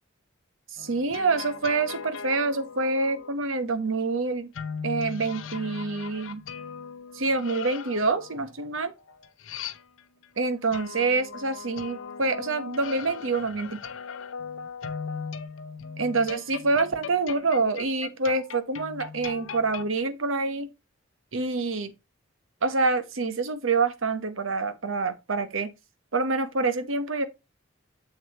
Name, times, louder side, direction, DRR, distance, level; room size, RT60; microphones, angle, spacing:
sound 1, 0.8-3.3 4.5-10.2 10.7-19.9, left 6 dB, 75° left, 0.7 m, -38 dB
voice 1, 0.8-4.5 4.8-6.4 7.1-8.9 10.4-13.7 16.0-20.7 21.3-21.9 22.6-25.7 26.1-27.3, right 3 dB, 75° right, 1.0 m, -26 dB
7.2 x 6.3 x 2.9 m
head